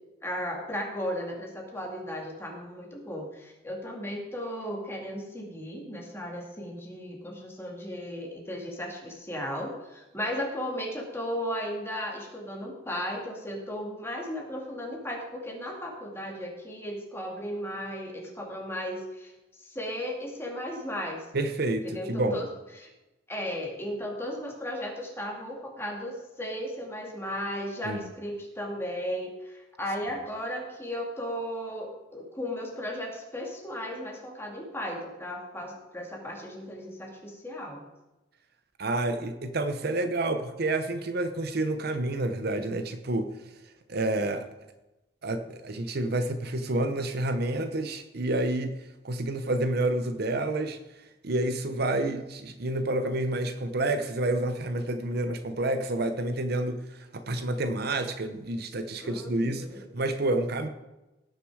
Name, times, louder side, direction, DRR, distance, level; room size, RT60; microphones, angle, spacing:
voice 1, 0.2-19.3 19.6-21.2 21.8-22.4 22.7-22.9 23.3-37.8 59.0-59.8, equal, 15° left, -1 dB, 2.4 m, -35 dB
voice 2, 21.3-22.4 27.8-28.1 38.8-43.3 43.9-44.5 45.2-48.7 49.0-60.7, right 2 dB, 55° right, 9 dB, 0.8 m, -29 dB
17.5 x 6.7 x 4.8 m, 1.0 s
head